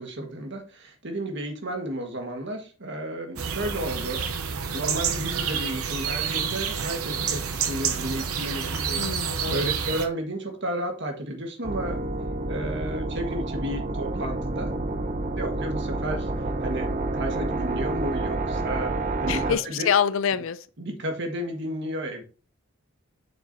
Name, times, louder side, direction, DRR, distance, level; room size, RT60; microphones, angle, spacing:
voice 1, 0.0-4.2 4.7-9.0 9.5-12.0 12.5-14.7 15.4-16.3 16.6-18.9 19.2-19.9 20.8-22.2, right 1 dB, 55° right, 1.6 m, -32 dB
sound 1, 3.4-10.1, right 7 dB, 80° right, 0.8 m, -29 dB
voice 2, 9.0-9.6 19.3-20.7, left 7 dB, 60° left, 0.4 m, -25 dB
sound 2, 11.6-19.5, right 2 dB, 35° right, 0.7 m, -29 dB
7.5 x 6.0 x 2.7 m
head